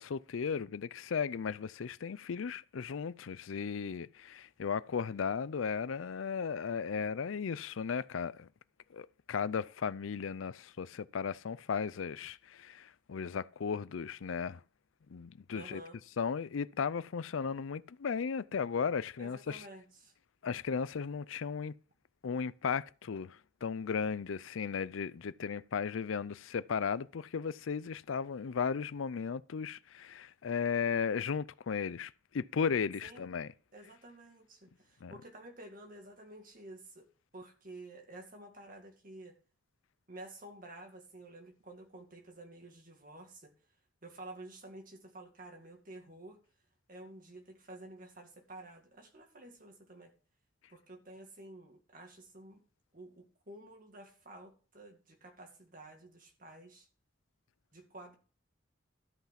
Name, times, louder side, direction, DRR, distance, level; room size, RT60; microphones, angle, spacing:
voice 1, 0.0-8.5 8.9-14.6 15.1-15.8 16.2-19.6 20.4-21.7 22.2-33.5 35.0-35.1, left 6 dB, 85° left, 0.5 m, -35 dB
voice 2, 15.5-16.0 19.2-20.2 33.0-33.3 33.7-37.1 37.3-39.4 40.1-43.5 44.0-46.4 46.9-50.1 50.7-52.6 52.9-56.9 57.7-58.2, right 2 dB, 45° right, 2.1 m, -51 dB
13.0 x 5.7 x 5.8 m
head